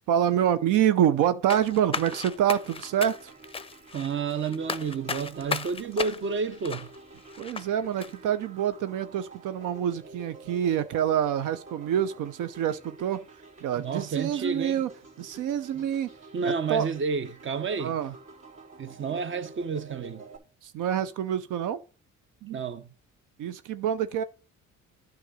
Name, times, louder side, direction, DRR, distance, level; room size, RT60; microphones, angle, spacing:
voice 1, 0.1-3.3 7.4-13.2 13.6-14.9 15.2-16.1 16.4-16.9 17.8-18.1 20.6-21.8 23.4-24.2, right 10 dB, 85° right, 0.7 m, -26 dB
sound 1, 1.5-7.7 8.0-8.1, left 5 dB, 20° left, 0.6 m, -35 dB
sound 2, 1.7-20.4, right 3 dB, 60° right, 3.3 m, -49 dB
voice 2, 3.9-6.9 13.8-14.8 15.7-15.8 16.3-18.0 18.8-20.2 22.4-22.9, right 5 dB, 40° right, 0.9 m, -30 dB
9.4 x 3.9 x 6.3 m
cardioid pair, 90°, 30 cm